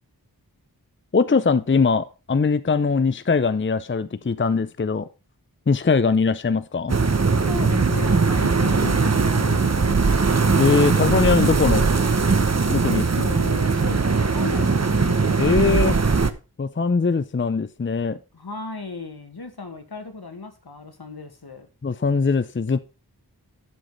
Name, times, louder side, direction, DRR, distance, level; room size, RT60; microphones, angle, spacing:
voice 1, 1.1-5.1 5.7-7.0 10.6-11.9 12.7-13.3 15.4-16.0 16.6-18.2 21.8-22.8, left 4 dB, 30° left, 0.6 m, -21 dB
sound 1, 6.9-16.3, right 4 dB, 45° right, 0.9 m, -20 dB
voice 2, 7.5-10.5 12.9-15.2 18.3-21.7, left 3 dB, 75° left, 1.8 m, -35 dB
11.5 x 5.0 x 5.4 m
wide cardioid pair, 50°, 38 cm